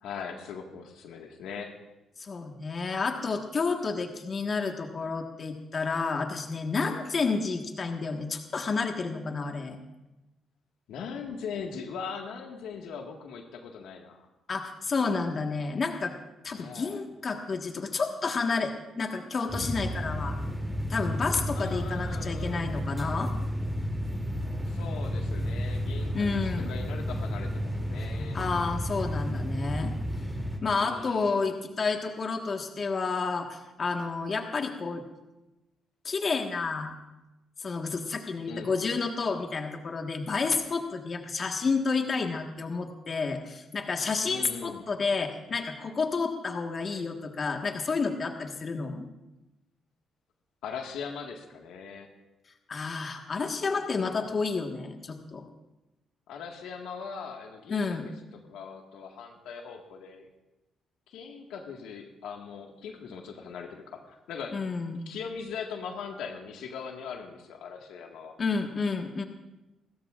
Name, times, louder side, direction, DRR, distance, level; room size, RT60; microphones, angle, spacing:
voice 1, 0.0-1.8 10.9-14.3 16.6-17.0 21.5-22.7 24.6-28.4 30.7-31.5 38.5-38.7 44.2-44.8 50.6-52.1 56.3-60.3 61.1-64.6 64.9-68.4, left 6 dB, 85° left, 2 dB, 1.8 m, -40 dB
voice 2, 2.2-9.8 14.5-16.1 16.4-20.4 20.9-23.3 26.1-26.7 28.3-29.9 30.6-35.0 36.0-36.9 37.6-49.1 52.7-55.5 57.7-58.1 64.5-65.0 68.4-69.2, left 4 dB, 40° left, 3 dB, 1.6 m, -30 dB
sound 1, 19.5-30.6, equal, ahead, 2.9 m, -32 dB
28.5 x 13.5 x 2.5 m, 0.99 s
cardioid pair, 90°, 0 cm